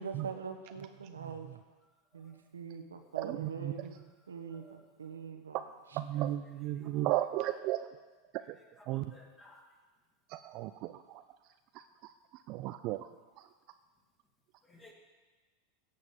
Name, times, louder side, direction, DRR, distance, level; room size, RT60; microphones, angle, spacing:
voice 1, 0.0-1.5 2.1-5.6 5.9-6.0, right 6 dB, 80° right, 5 dB, 1.2 m, -43 dB
voice 2, 3.1-3.9 5.9-7.9 8.9-9.1 10.3-11.2 11.7-11.8 12.5-13.1, right 14 dB, 50° right, 9 dB, 0.5 m, -34 dB
voice 3, 8.9-9.6 14.7-14.9, left 1 dB, 15° left, 0 dB, 2.7 m, -57 dB
16.5 x 5.7 x 7.0 m, 1.3 s
figure-of-eight pair, 85°, 0 cm